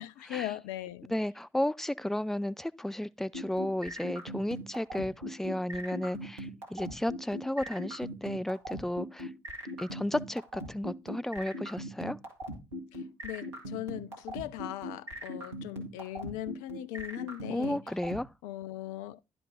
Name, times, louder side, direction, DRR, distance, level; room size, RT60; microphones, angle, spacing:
voice 1, 0.0-1.1 13.2-17.8 18.4-19.2, left 14 dB, 65° left, 0.5 m, -39 dB
voice 2, 1.1-9.3 9.8-12.2 17.4-18.3, left 1 dB, ahead, 0.4 m, -33 dB
sound 1, 3.3-18.2, equal, 80° right, 1.5 m, -39 dB
10.5 x 4.9 x 4.9 m
figure-of-eight pair, 40°, 14 cm